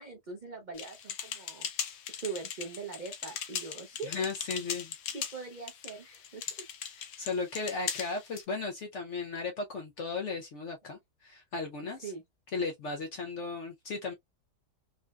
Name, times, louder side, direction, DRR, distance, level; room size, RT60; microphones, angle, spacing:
voice 1, 0.0-1.7 2.1-4.1 5.1-6.7 12.0-12.2, right 4 dB, 75° right, 0.4 m, -42 dB
sound 1, 0.8-8.4, left 8 dB, 90° left, 1.3 m, -39 dB
voice 2, 4.0-4.9 6.9-12.1 12.5-14.1, left 4 dB, 70° left, 0.7 m, -36 dB
3.7 x 2.2 x 2.3 m
omnidirectional pair, 1.8 m